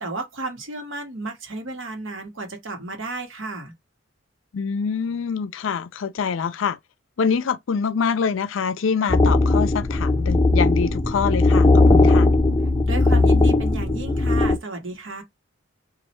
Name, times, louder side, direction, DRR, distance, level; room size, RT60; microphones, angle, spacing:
voice 1, 0.0-3.7 12.8-15.2, right 2 dB, 75° right, 1.2 m, -33 dB
voice 2, 4.5-6.8 7.2-12.3, left 6 dB, 75° left, 0.4 m, -25 dB
sound 1, 9.1-14.6, left 2 dB, 15° left, 0.5 m, -18 dB
3.1 x 2.5 x 4.3 m
head